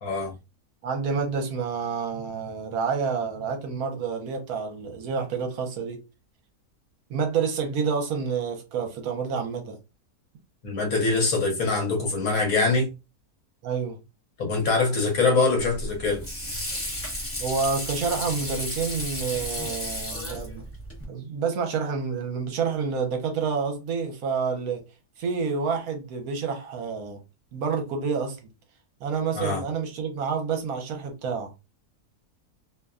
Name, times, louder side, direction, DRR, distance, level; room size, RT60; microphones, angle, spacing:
voice 1, 0.0-0.3 10.6-12.9 14.4-16.2 29.4-29.6, left 3 dB, 65° left, 1.2 m, -23 dB
voice 2, 0.8-6.0 7.1-9.8 13.6-14.0 17.4-20.6 21.1-24.8 25.2-27.2 27.5-28.5 29.0-31.5, right 5 dB, 70° right, 1.1 m, -28 dB
Water / Sink (filling or washing), 15.6-21.0, left 1 dB, 20° left, 0.3 m, -33 dB
2.8 x 2.2 x 2.3 m
omnidirectional pair, 1.7 m